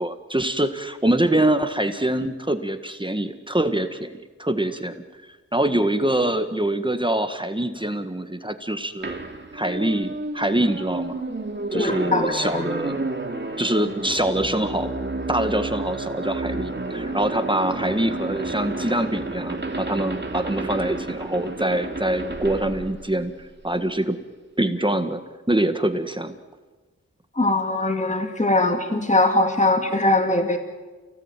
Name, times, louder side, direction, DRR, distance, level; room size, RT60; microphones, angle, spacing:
voice 1, 0.0-4.1 4.4-5.0 5.5-9.1 9.5-11.2 11.7-13.1 13.6-14.9 15.3-23.3 23.6-24.2 24.6-25.2 25.5-26.4, right 1 dB, 15° right, 8 dB, 1.7 m, -24 dB
sound 1, 9.0-23.8, right 2 dB, 35° right, 2.7 m, -31 dB
voice 2, 11.7-12.4 27.4-30.6, left 2 dB, 25° left, 5 dB, 2.3 m, -21 dB
29.5 x 18.0 x 9.1 m, 1.3 s
wide cardioid pair, 75°, 30 cm